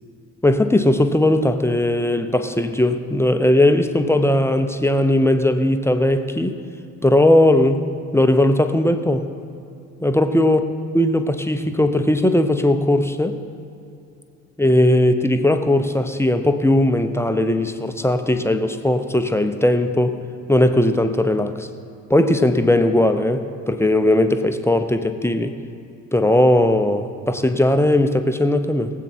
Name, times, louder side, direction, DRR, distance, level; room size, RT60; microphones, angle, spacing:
voice 1, 0.4-6.6 7.0-7.8 8.1-9.3 10.0-10.6 10.9-13.4 14.6-20.2 20.5-21.7 22.1-25.5 26.1-28.9, left 1 dB, 5° left, 8 dB, 0.8 m, -18 dB
19.0 x 8.2 x 4.6 m, 2.6 s
figure-of-eight pair, 50°, 48 cm